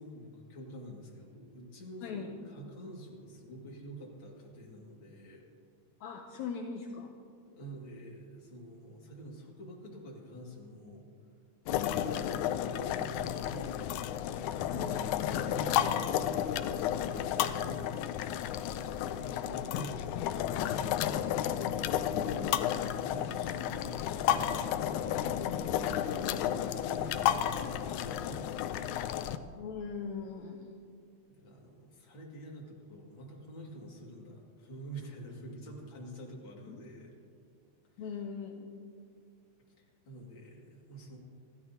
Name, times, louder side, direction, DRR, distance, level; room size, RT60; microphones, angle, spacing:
voice 1, 0.0-5.4 7.6-11.1 11.7-13.8 14.5-18.4 18.8-21.5 22.2-29.2 31.4-37.1 37.9-38.2 39.8-41.2, equal, 35° left, -2 dB, 2.7 m, -47 dB
voice 2, 2.0-2.3 6.0-7.1 11.7-12.2 14.7-15.0 21.9-22.5 29.5-30.7 36.7-36.8 38.0-38.7, left 5 dB, 75° left, 2 dB, 1.8 m, -40 dB
sound 1, 11.7-29.4, left 10 dB, 90° left, 1.7 m, -32 dB
29.0 x 12.5 x 2.9 m, 2.3 s
omnidirectional pair, 4.0 m